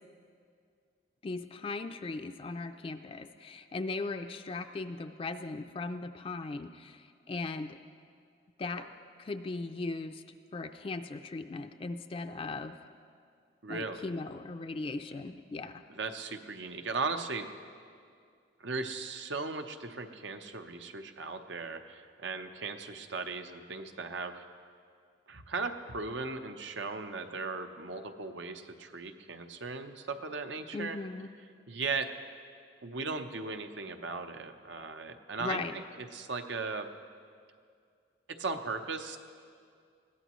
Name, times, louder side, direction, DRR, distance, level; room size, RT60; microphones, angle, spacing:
voice 1, 1.2-7.8 8.6-8.9 9.2-12.8 13.7-15.8 30.7-31.3 35.4-35.8, left 3 dB, 30° left, 7 dB, 0.4 m, -38 dB
voice 2, 13.6-14.1 15.9-17.5 18.6-24.4 25.3-31.0 31.7-32.1 32.8-36.9 38.3-39.2, right 4 dB, 80° right, 6 dB, 0.9 m, -37 dB
21.0 x 16.0 x 3.1 m, 2.2 s
head